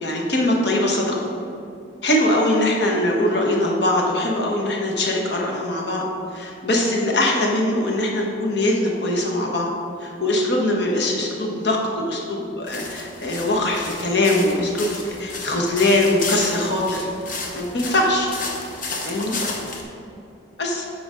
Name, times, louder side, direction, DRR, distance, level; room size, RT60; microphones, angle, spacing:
voice 1, 0.0-1.1 2.0-6.0 6.3-9.7 10.0-17.1 17.5-18.3 19.0-19.4 20.6-20.8, left 1 dB, 60° left, -1 dB, 1.1 m, -22 dB
sound 1, 12.7-19.8, left 3 dB, 40° left, 0.9 m, -32 dB
7.8 x 5.0 x 5.0 m, 2.6 s
head